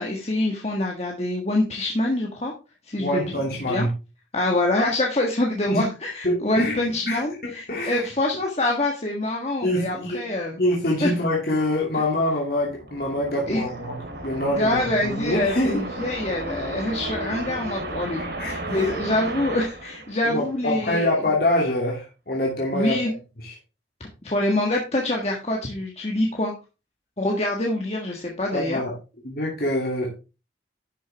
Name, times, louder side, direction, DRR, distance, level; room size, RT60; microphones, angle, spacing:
voice 1, 0.0-2.5 2.8-3.4 3.7-3.9 4.3-10.6 11.0-11.1 13.5-13.6 14.6-21.1 22.7-23.1 24.2-26.5 27.2-28.8, left 1 dB, 35° left, 0 dB, 1.6 m, -25 dB
voice 2, 3.0-3.9 5.7-5.9 6.2-8.1 9.6-10.2 10.6-14.0 14.2-15.8 18.2-18.9 20.2-23.0 23.4-23.5 28.5-28.9 29.2-30.2, left 1 dB, 55° left, -2 dB, 2.7 m, -25 dB
sound 1, 12.4-20.8, right 2 dB, 60° right, 2.7 m, -34 dB
11.0 x 6.8 x 3.4 m, 0.30 s
head